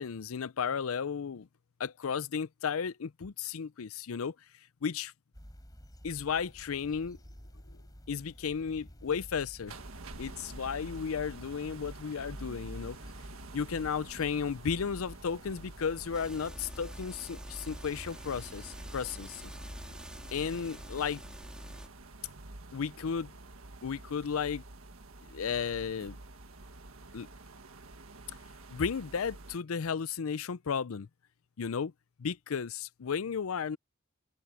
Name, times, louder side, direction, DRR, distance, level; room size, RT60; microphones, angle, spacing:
voice 1, 0.0-1.5 1.8-4.3 4.8-5.1 6.0-7.2 8.1-9.7 10.2-13.0 13.5-19.5 20.3-21.2 22.7-23.3 23.8-24.6 25.3-26.2 27.1-27.3 28.7-31.1 31.6-31.9 32.2-33.8, left 6 dB, 85° left, 0.5 m, -34 dB
sound 1, 5.3-20.7, equal, 20° left, 4.1 m, -51 dB
sound 2, 9.7-29.6, right 2 dB, 85° right, 1.6 m, -49 dB
sound 3, 16.1-21.9, equal, 5° right, 2.5 m, -46 dB
open air
head